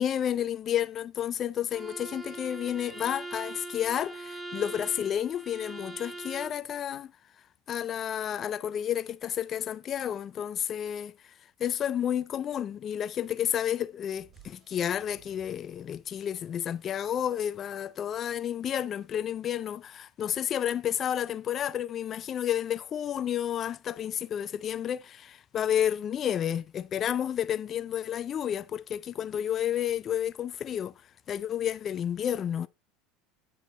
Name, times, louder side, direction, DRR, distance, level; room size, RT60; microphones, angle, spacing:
voice 1, 0.0-7.1 7.7-11.3 11.6-30.9 31.3-32.7, left 10 dB, 40° left, 0.4 m, -31 dB
Bowed string instrument, 1.7-6.6, right 2 dB, 15° right, 1.7 m, -42 dB
sound 1, 14.2-18.6, right 7 dB, 30° right, 3.8 m, -61 dB
9.2 x 6.3 x 4.3 m
supercardioid pair, 115°, 0 cm